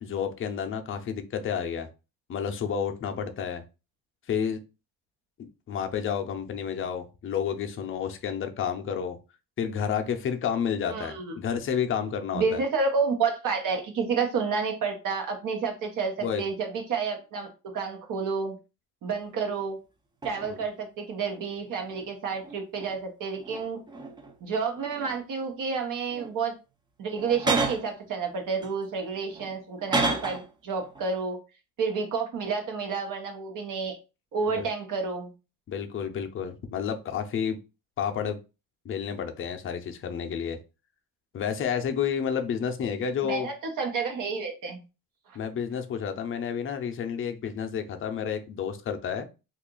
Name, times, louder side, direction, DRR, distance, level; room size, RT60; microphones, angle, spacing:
voice 1, 0.0-1.9 2.3-3.6 4.3-4.6 5.4-9.2 9.6-12.6 16.2-16.4 20.5-20.6 34.6-34.7 35.7-37.6 38.0-38.4 38.8-40.6 41.3-43.5 45.3-49.3, left 7 dB, 40° left, 6 dB, 0.5 m, -30 dB
voice 2, 10.9-11.4 12.3-18.6 19.0-19.8 20.2-23.8 24.4-26.5 27.0-31.4 31.8-34.0 34.3-35.3 43.2-44.8 45.3-45.4, right 5 dB, 65° right, 3 dB, 0.9 m, -30 dB
sound 1, 19.5-19.7 20.2-20.7 21.5-23.0 23.4-24.4 24.8-25.4 26.1-26.4 27.1-27.9 28.6-30.5 30.8-31.1, right 3 dB, 15° right, 0.4 m, -32 dB
2.8 x 2.4 x 3.7 m, 0.30 s
cardioid pair, 130°, 34 cm